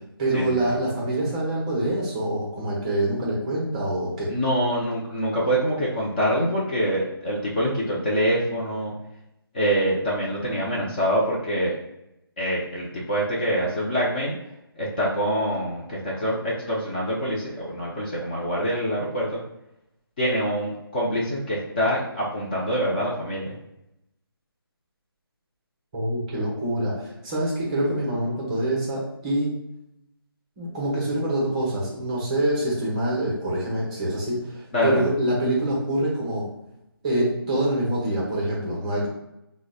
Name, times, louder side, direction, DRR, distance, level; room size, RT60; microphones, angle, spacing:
voice 1, 0.2-4.3 25.9-29.5 30.6-36.4 37.0-39.1, right 1 dB, 20° right, -4 dB, 0.7 m, -25 dB
voice 2, 4.3-8.9 9.5-11.7 12.4-14.3 14.8-19.4 20.2-23.5 34.7-35.1, equal, 25° left, -5 dB, 0.5 m, -25 dB
4.8 x 2.0 x 2.3 m, 0.86 s
figure-of-eight pair, 160°, 13 cm